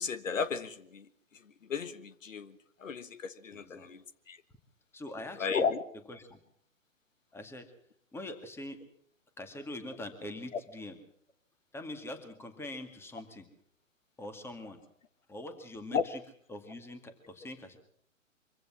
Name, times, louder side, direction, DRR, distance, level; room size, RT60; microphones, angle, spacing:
voice 1, 0.0-4.4 5.4-5.8 15.9-16.0, left 5 dB, 70° left, 13 dB, 1.5 m, -34 dB
voice 2, 3.5-3.9 4.9-5.7 6.1-6.4 7.3-7.7 8.1-8.8 9.4-11.0 11.7-13.5 14.2-14.8 15.3-16.2 16.5-17.8, left 1 dB, 5° left, 8 dB, 2.1 m, -43 dB
24.5 x 16.0 x 7.4 m, 0.65 s
figure-of-eight pair, 130°, 40 cm